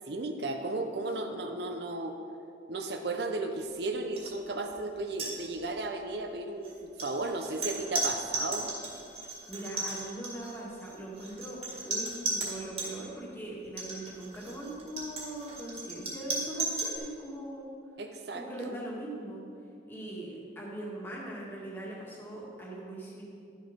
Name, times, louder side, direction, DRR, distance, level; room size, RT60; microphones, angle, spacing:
voice 1, 0.1-2.1 2.7-8.7 18.0-18.7, right 2 dB, 65° right, 5 dB, 0.7 m, -35 dB
sound 1, 4.2-4.3 4.6-4.8 5.1-5.9 6.6-12.9 13.6-17.0, right 3 dB, 35° right, 1.9 m, -35 dB
voice 2, 9.1-17.7 18.3-19.4 19.9-23.2, right 1 dB, 10° left, -5 dB, 1.8 m, -41 dB
12.0 x 6.6 x 5.2 m, 2.5 s
head